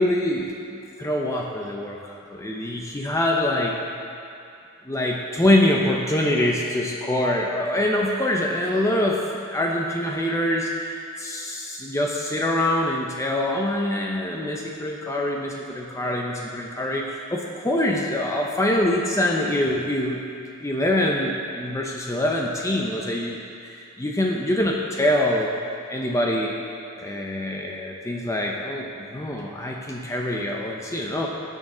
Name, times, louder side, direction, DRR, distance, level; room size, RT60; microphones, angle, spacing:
voice 1, 0.0-3.8 4.9-20.2 20.6-25.5 25.9-26.6 27.0-31.3, left 1 dB, 15° left, -1 dB, 0.6 m, -24 dB
16.5 x 6.4 x 3.8 m, 2.5 s
head